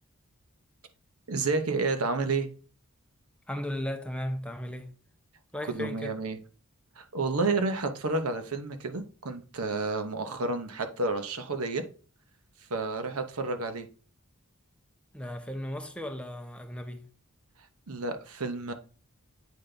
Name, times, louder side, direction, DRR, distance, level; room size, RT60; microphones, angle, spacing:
voice 1, 1.3-2.5 5.7-6.4 7.0-11.8 12.7-13.9 17.9-18.7, right 3 dB, 85° right, 0.9 m, -30 dB
voice 2, 3.5-4.9 5.5-6.1 15.1-17.0, left 1 dB, 5° left, 0.6 m, -36 dB
8.5 x 3.3 x 3.8 m
head